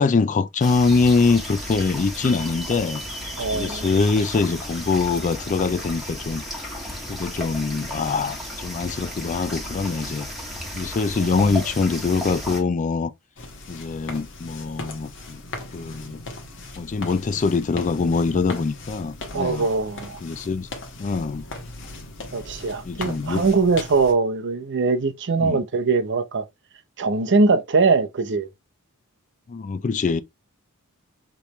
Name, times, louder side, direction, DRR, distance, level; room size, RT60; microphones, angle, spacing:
voice 1, 0.0-3.0 3.5-6.4 7.1-10.3 10.7-13.1 13.7-15.4 15.7-16.2 16.8-19.7 20.2-20.7 21.0-21.5 22.8-23.4 25.4-25.6 29.5-30.2, left 4 dB, 35° left, 0.4 m, -23 dB
sound 1, 0.6-12.6, equal, ahead, 1.5 m, -34 dB
voice 2, 3.4-3.9 19.3-20.2 22.3-26.4 27.0-28.5, right 4 dB, 55° right, 0.7 m, -21 dB
sound 2, 13.4-24.1, left 2 dB, 60° left, 1.2 m, -38 dB
5.1 x 3.2 x 3.0 m
head